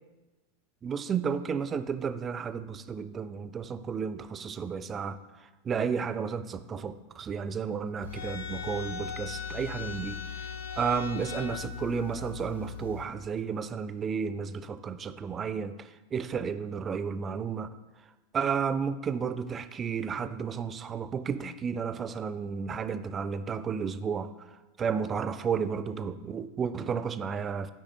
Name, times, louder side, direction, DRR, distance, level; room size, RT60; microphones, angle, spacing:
voice 1, 0.8-5.2 5.6-10.5 10.8-17.7 18.3-24.3 24.8-27.7, right 6 dB, 20° right, 13 dB, 0.3 m, -32 dB
sound 1, 8.0-13.0, left 6 dB, 80° left, 1.0 m, -38 dB
8.1 x 4.9 x 4.2 m, 1.2 s
figure-of-eight pair, 90°, 0 cm